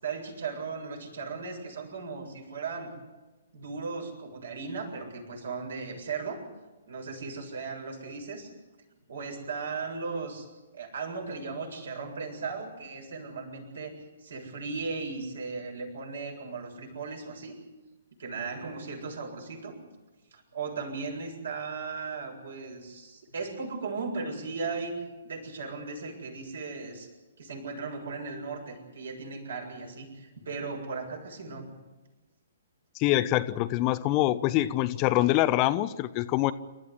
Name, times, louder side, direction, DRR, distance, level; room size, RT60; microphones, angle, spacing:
voice 1, 0.0-2.9 3.5-6.4 6.9-8.5 9.1-10.5 10.7-17.5 18.2-19.8 20.3-27.1 27.4-31.7, right 4 dB, 60° right, 7.4 m, -37 dB
voice 2, 33.0-36.5, left 15 dB, 30° left, 0.9 m, -25 dB
28.5 x 14.0 x 9.9 m
figure-of-eight pair, 120°, 0 cm